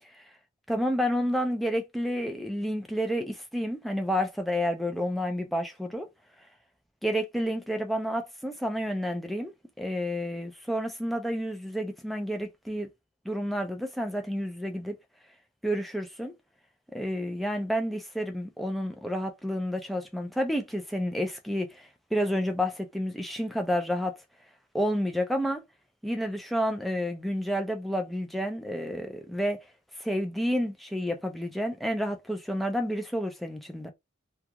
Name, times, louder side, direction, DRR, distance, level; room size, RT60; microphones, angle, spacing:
voice 1, 0.7-6.1 7.0-12.9 13.3-15.0 15.6-16.4 16.9-24.2 24.7-25.6 26.0-29.7 30.0-33.9, equal, ahead, 0.4 m, -30 dB
2.4 x 2.3 x 2.7 m
head